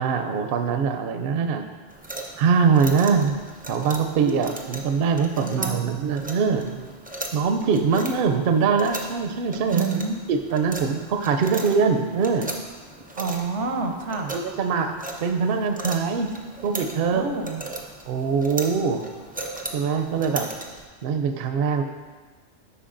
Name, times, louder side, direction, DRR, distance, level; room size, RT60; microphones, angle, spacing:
voice 1, 0.0-1.7 2.4-3.4 3.7-6.9 7.3-10.0 10.3-12.5 14.3-16.3 16.6-17.3 18.1-19.1 19.7-20.5 21.0-21.8, right 5 dB, 65° right, 6 dB, 0.7 m, -23 dB
sound 1, 1.9-20.9, right 2 dB, 15° right, 0.3 m, -38 dB
voice 2, 5.4-5.8 9.6-10.2 13.2-14.3 17.1-17.6, right 4 dB, 90° right, 4 dB, 1.1 m, -28 dB
12.5 x 4.5 x 2.5 m, 1.4 s
omnidirectional pair, 1.2 m